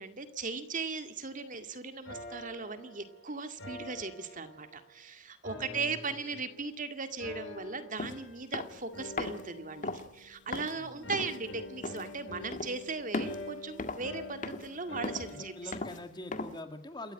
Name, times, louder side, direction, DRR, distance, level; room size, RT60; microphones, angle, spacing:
voice 1, 0.0-15.7, right 4 dB, 40° right, 9 dB, 2.0 m, -38 dB
sound 1, 2.0-5.0 5.4-6.8 7.2-8.6 8.9-10.6 11.0-15.7, left 2 dB, 60° left, 8.0 m, -46 dB
voice 2, 5.5-6.0 6.3-6.4 10.7-11.3 15.3-17.1, left 1 dB, 20° left, 8 dB, 2.1 m, -45 dB
sound 2, 8.0-8.1 8.5-8.8 9.2-9.4 9.8-10.1 10.5-10.7 11.1-11.4 11.8-12.1 12.5-12.8 13.1-13.4 13.8-14.1 14.4-14.7 15.0-15.4 15.7-16.0 16.3-16.6, left 2 dB, 40° left, 1.9 m, -37 dB
28.5 x 14.0 x 10.0 m, 0.72 s
head